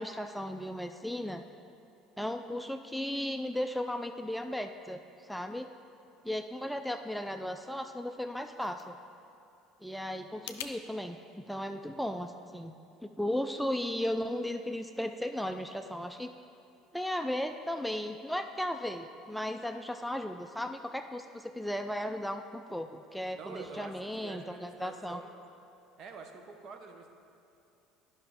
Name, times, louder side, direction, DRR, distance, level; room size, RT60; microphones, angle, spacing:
voice 1, 0.0-1.4 2.2-5.7 6.2-9.0 9.8-12.7 13.0-16.3 16.9-25.2, left 1 dB, ahead, 6 dB, 0.3 m, -36 dB
sound 1, 8.1-10.8, left 10 dB, 85° left, 0.4 m, -48 dB
voice 2, 23.3-25.4 26.0-27.1, right 4 dB, 55° right, 5 dB, 0.8 m, -47 dB
10.5 x 5.5 x 3.6 m, 2.7 s
supercardioid pair, 85°, 0 cm